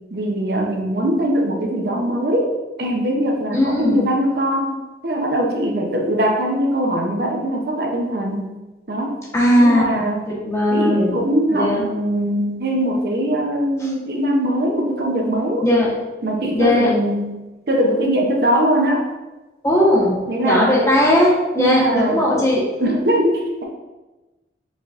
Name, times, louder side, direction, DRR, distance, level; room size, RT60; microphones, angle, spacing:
voice 1, 0.1-2.5 2.8-4.7 5.0-8.5 8.9-9.2 9.6-10.2 10.7-15.6 16.2-17.4 17.7-19.1 20.3-20.8 21.6-22.2 22.8-23.6, right 1 dB, 55° right, 0 dB, 0.6 m, -21 dB
voice 2, 3.5-4.1 9.3-11.2 11.5-11.8 13.8-13.9 15.6-15.9 16.5-16.9 19.6-22.7, left 1 dB, 15° left, -6 dB, 1.1 m, -18 dB
4.9 x 3.9 x 2.4 m, 1.1 s
head